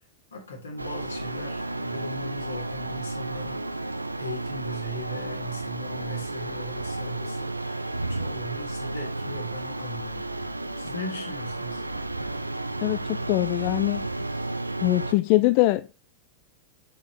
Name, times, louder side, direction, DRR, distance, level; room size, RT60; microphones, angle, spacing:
voice 1, 0.3-3.6 4.2-7.6 8.1-10.3 10.7-11.8, equal, 70° left, 3.8 m, -38 dB
sound 1, 0.8-15.1, right 2 dB, 85° right, 0.5 m, -32 dB
voice 2, 12.8-14.1 14.8-15.9, left 18 dB, 45° left, 0.4 m, -23 dB
7.3 x 7.1 x 3.4 m
figure-of-eight pair, 90°, 0 cm